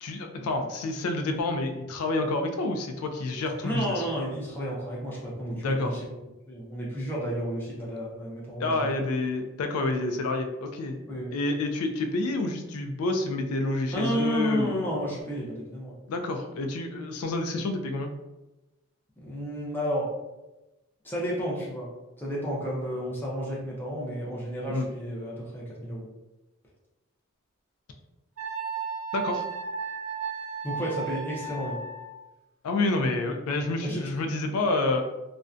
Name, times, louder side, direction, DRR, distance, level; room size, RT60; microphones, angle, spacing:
voice 1, 0.0-4.0 5.5-6.0 8.6-11.0 11.3-14.8 16.1-18.1 24.7-24.8 29.1-29.5 32.6-35.0, left 2 dB, 85° left, 5 dB, 0.3 m, -28 dB
voice 2, 3.6-6.2 6.5-9.1 11.1-11.4 13.9-16.0 19.2-20.1 21.0-21.9 22.2-26.1 30.6-31.8 33.8-34.1, equal, 10° left, -5 dB, 0.5 m, -31 dB
Wind instrument woodwind instrument, 28.4-32.2, right 5 dB, 75° right, 0.5 m, -34 dB
2.5 x 2.1 x 2.4 m, 1.0 s
head